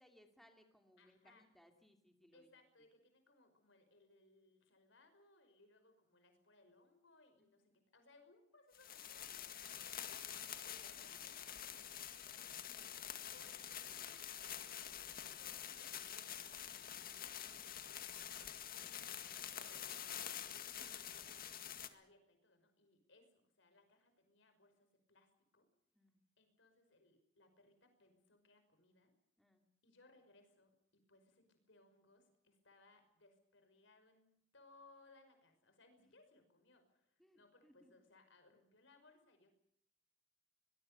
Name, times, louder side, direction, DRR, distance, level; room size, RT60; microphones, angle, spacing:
voice 1, 0.0-2.5 7.6-7.7 12.7-13.4 20.8-21.0 25.9-26.2 29.4-29.6 37.2-37.9, equal, ahead, 4 dB, 2.6 m, -68 dB
voice 2, 1.0-1.5 2.3-12.6 13.3-19.0 19.5-20.5 20.8-21.4 21.7-25.7 26.4-29.1 29.8-39.5, left 2 dB, 65° left, 7 dB, 5.6 m, -68 dB
sound 1, 8.7-21.9, left 9 dB, 50° left, 2.0 m, -47 dB
23.5 x 21.5 x 6.9 m, 0.72 s
head